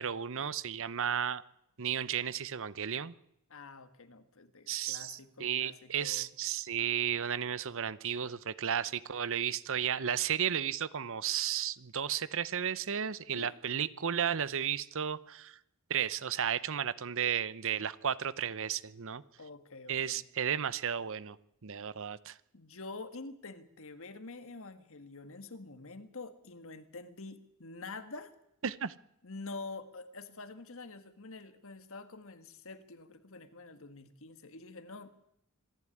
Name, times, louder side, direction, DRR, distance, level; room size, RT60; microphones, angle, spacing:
voice 1, 0.0-1.4 1.8-3.1 4.7-15.6 15.9-19.2 19.9-21.4 21.6-22.4 28.6-28.9, right 8 dB, 65° right, 17 dB, 0.8 m, -33 dB
voice 2, 3.5-6.3 13.3-13.5 19.4-20.2 22.5-28.3 29.2-35.1, left 3 dB, 65° left, 10 dB, 1.7 m, -47 dB
25.5 x 11.0 x 9.9 m, 0.79 s
head